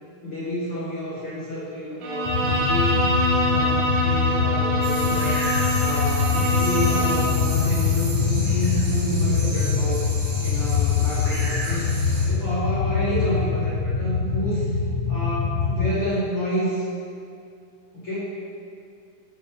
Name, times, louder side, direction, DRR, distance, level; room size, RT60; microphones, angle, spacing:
voice 1, 0.2-3.0 3.4-10.0 10.4-14.7 15.1-16.8 17.9-18.3, equal, 35° left, -10 dB, 2.6 m, -29 dB
Bowed string instrument, 2.0-7.5, equal, 70° right, 3.5 m, -25 dB
sound 1, 2.3-15.9, left 5 dB, 85° left, 3.4 m, -24 dB
sound 2, 4.8-12.3, right 2 dB, 90° right, 5.2 m, -33 dB
14.5 x 5.2 x 5.6 m, 2.5 s
omnidirectional pair, 5.3 m